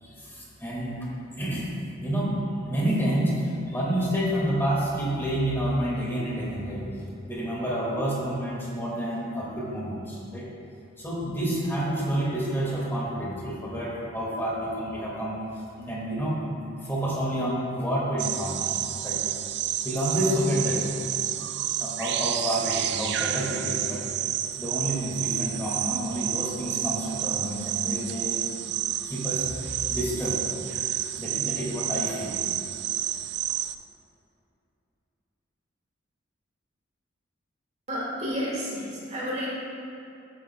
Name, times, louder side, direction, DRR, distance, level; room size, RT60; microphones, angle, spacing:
voice 1, 0.0-1.0 1.3-1.7 2.0-2.3 2.6-6.8 7.3-10.5 11.0-18.6 19.0-19.2 19.8-20.8 21.8-24.0 24.6-28.7 29.0-30.4 31.2-32.4, right 1 dB, 10° left, -6 dB, 2.0 m, -29 dB
sound 1, 18.2-33.7, right 12 dB, 55° right, 0.3 m, -30 dB
voice 2, 37.9-39.5, equal, 35° right, -5 dB, 1.9 m, -31 dB
13.5 x 9.0 x 2.3 m, 2.7 s
head